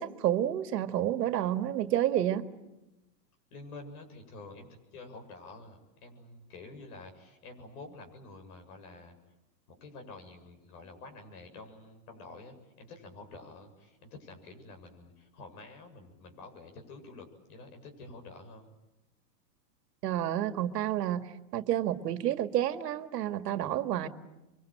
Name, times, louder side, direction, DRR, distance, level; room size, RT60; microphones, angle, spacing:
voice 1, 0.0-2.4 20.0-21.3 21.5-24.1, right 12 dB, 70° right, 10 dB, 2.0 m, -29 dB
voice 2, 3.5-9.2 9.7-18.7, left 3 dB, 60° left, 6 dB, 7.8 m, -49 dB
26.0 x 24.0 x 9.1 m, 0.98 s
supercardioid pair, 145°, 50 cm